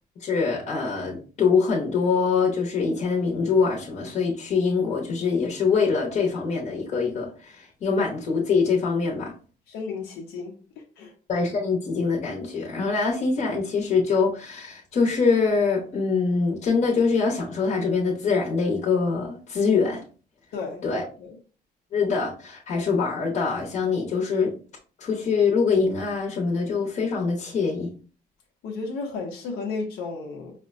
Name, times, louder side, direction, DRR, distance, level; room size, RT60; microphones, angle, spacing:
voice 1, 0.2-9.3 11.3-20.0 20.8-21.0 21.9-24.5 25.0-27.9, left 5 dB, 45° left, 0.9 m, -24 dB
voice 2, 9.7-10.5 11.0-11.1 20.5-21.4 28.6-30.5, left 4 dB, 85° left, 0.7 m, -33 dB
5.0 x 2.1 x 2.5 m
cardioid pair, 145°, 16 cm